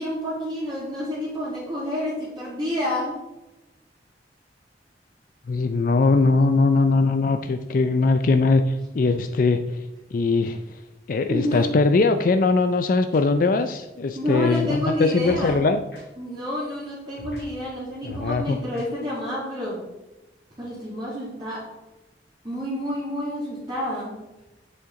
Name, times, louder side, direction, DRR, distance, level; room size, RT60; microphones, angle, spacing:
voice 1, 0.0-3.2 11.3-11.6 14.2-15.6 16.2-19.8 20.6-21.6 22.4-24.1, left 1 dB, 25° right, -8 dB, 2.2 m, -29 dB
voice 2, 5.5-9.8 10.1-10.6 11.1-15.8 18.0-18.6, left 3 dB, 50° left, 8 dB, 0.4 m, -21 dB
sound 1, 13.1-13.2 14.5-14.6 15.2-15.5 15.9-16.0 17.2-17.4 18.1-18.3 18.7-18.8, right 1 dB, 65° left, 2.4 m, -40 dB
7.7 x 6.6 x 3.8 m, 1.0 s
head